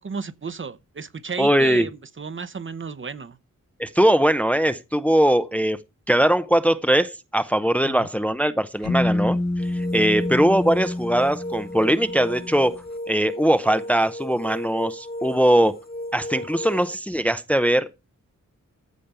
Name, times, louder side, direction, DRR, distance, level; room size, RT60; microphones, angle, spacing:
voice 1, 0.0-3.4 7.8-8.1 9.9-10.2, right 5 dB, 40° right, 0.8 m, -34 dB
voice 2, 1.4-1.9 3.8-5.8 6.1-15.8 16.1-17.9, right 1 dB, 5° left, 0.6 m, -21 dB
sound 1, 8.8-12.7, left 2 dB, 60° left, 2.2 m, -27 dB
sound 2, 9.6-17.0, left 1 dB, 30° left, 1.1 m, -35 dB
14.5 x 5.1 x 6.8 m
wide cardioid pair, 150°, 31 cm